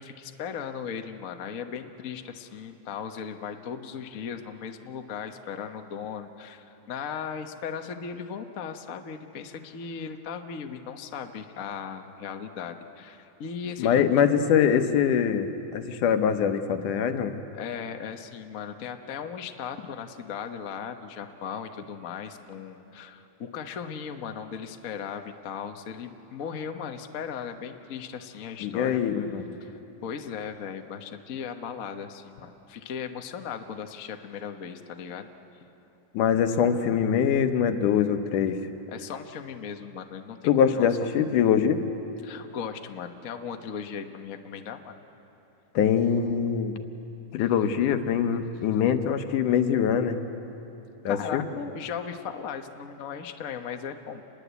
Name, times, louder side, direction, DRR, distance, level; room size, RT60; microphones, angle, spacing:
voice 1, 0.0-14.1 17.5-29.0 29.6-35.3 38.9-40.9 42.2-44.9 51.0-54.2, left 7 dB, 70° left, 6 dB, 0.7 m, -37 dB
voice 2, 13.8-17.3 28.6-29.4 36.1-38.6 40.4-41.8 45.7-46.8 47.3-50.2 51.0-51.4, left 8 dB, 90° left, 8 dB, 2.7 m, -23 dB
28.5 x 21.5 x 8.2 m, 2.9 s
omnidirectional pair, 3.5 m